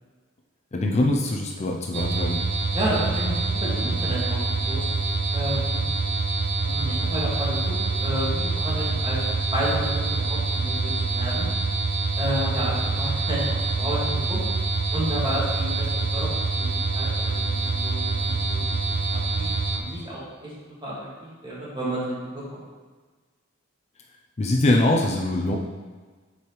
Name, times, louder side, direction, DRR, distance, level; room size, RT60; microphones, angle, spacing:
voice 1, 0.7-2.4 24.4-25.5, left 1 dB, 35° left, 0 dB, 0.5 m, -23 dB
sound 1, 1.9-19.8, right 3 dB, 60° right, 0.7 m, -25 dB
voice 2, 2.7-4.4 4.7-4.9 5.3-5.9 6.6-9.2 9.5-11.5 12.2-14.4 14.9-20.5 20.8-20.9 21.2-22.6, equal, 25° right, -7 dB, 2.0 m, -31 dB
8.1 x 4.7 x 3.2 m, 1.4 s
head